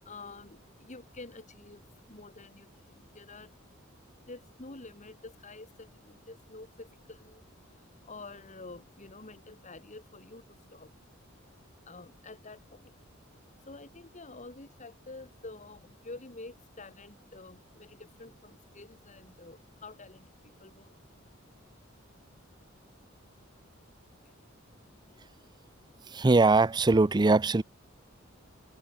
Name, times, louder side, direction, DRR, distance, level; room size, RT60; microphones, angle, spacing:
voice 1, 0.0-3.6 4.3-10.9 11.9-13.0 13.6-21.0 24.2-24.4 25.1-25.3, left 3 dB, 40° left, 2.2 m, -49 dB
voice 2, 26.1-27.6, right 3 dB, 20° right, 0.5 m, -22 dB
head